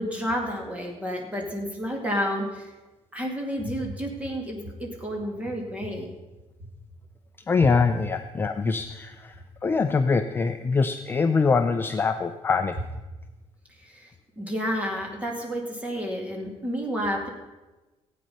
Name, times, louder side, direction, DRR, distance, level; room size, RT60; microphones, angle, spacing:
voice 1, 0.0-2.7 3.1-6.1 13.8-14.1 14.4-17.3, equal, 10° right, 0 dB, 2.2 m, -30 dB
voice 2, 7.5-9.4 9.6-12.8, left 4 dB, 20° left, 8 dB, 0.4 m, -23 dB
15.5 x 8.7 x 5.5 m, 1.1 s
cardioid pair, 175°, 12 cm